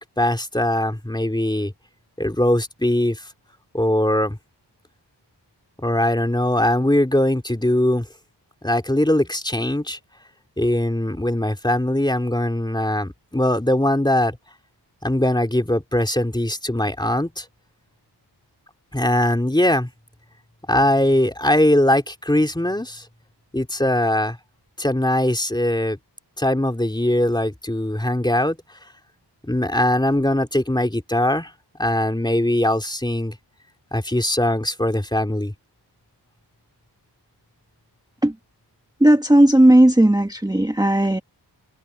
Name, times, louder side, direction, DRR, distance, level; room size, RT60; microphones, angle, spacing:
voice 1, 0.0-1.7 2.2-3.3 3.7-4.4 5.8-8.1 8.6-10.0 10.6-14.4 15.0-17.5 18.9-19.9 20.7-23.0 23.5-24.4 24.8-26.0 26.4-28.6 29.5-31.5 31.8-33.4 33.9-35.5, left 1 dB, 10° left, 3.0 m, -21 dB
voice 2, 39.0-41.2, right 1 dB, 10° right, 1.3 m, -15 dB
wide cardioid pair, 110°, 42 cm